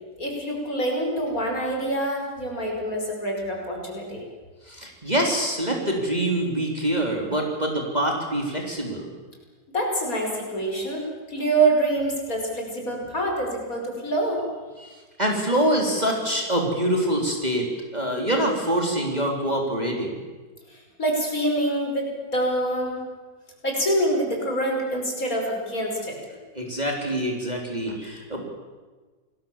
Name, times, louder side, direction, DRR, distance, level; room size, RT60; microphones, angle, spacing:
voice 1, 0.2-4.3 9.7-11.0 11.3-14.4 20.7-23.0 23.6-26.2, right 1 dB, 50° left, 1 dB, 5.9 m, -26 dB
voice 2, 4.7-9.1 14.8-17.7 17.9-20.2 26.5-28.4, right 1 dB, 20° right, 1 dB, 3.6 m, -25 dB
28.0 x 20.5 x 7.4 m, 1.4 s
omnidirectional pair, 2.0 m